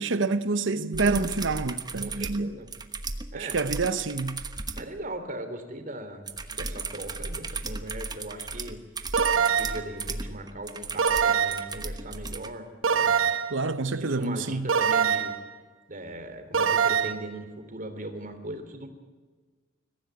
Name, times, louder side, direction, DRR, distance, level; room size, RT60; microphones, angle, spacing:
voice 1, 0.0-2.6 3.3-4.4 13.5-14.7, right 3 dB, 65° right, 0.9 m, -27 dB
sound 1, 0.9-4.9 6.3-12.5 14.2-14.3, right 3 dB, 20° right, 1.2 m, -36 dB
voice 2, 2.0-2.7 3.3-3.6 4.7-8.8 9.3-12.7 12.9-13.3 13.9-15.3 15.9-18.9, right 1 dB, 45° right, 3.0 m, -39 dB
sound 2, 9.1-9.9 11.0-11.7 12.8-13.6 14.7-15.4 16.5-17.1, right 7 dB, 90° right, 1.3 m, -23 dB
22.5 x 15.0 x 9.4 m
head